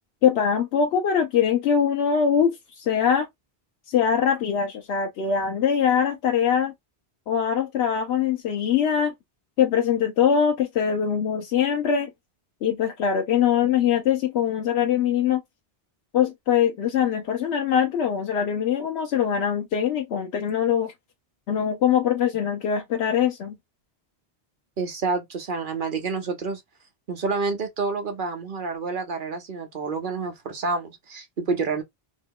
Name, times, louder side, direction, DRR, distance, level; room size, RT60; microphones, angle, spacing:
voice 1, 0.2-3.3 3.9-6.7 7.3-9.1 9.6-12.1 12.6-15.4 16.1-20.9 21.5-23.6, left 8 dB, 85° left, 0.9 m, -22 dB
voice 2, 24.8-26.6 27.1-31.8, right 4 dB, 55° right, 1.0 m, -28 dB
3.0 x 2.2 x 3.5 m
omnidirectional pair, 1.1 m